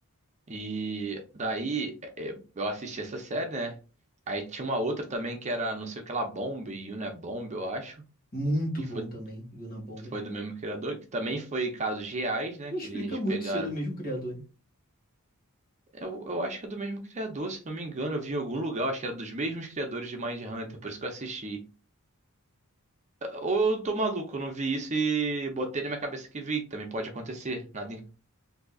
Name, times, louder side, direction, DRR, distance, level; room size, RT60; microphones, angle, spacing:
voice 1, 0.5-3.8 4.3-8.0 9.0-9.1 10.1-13.7 15.9-21.6 23.2-28.1, right 2 dB, 30° right, 0.6 m, -32 dB
voice 2, 8.3-10.1 12.7-14.4, equal, 40° left, 1.5 m, -32 dB
3.7 x 2.7 x 2.3 m
head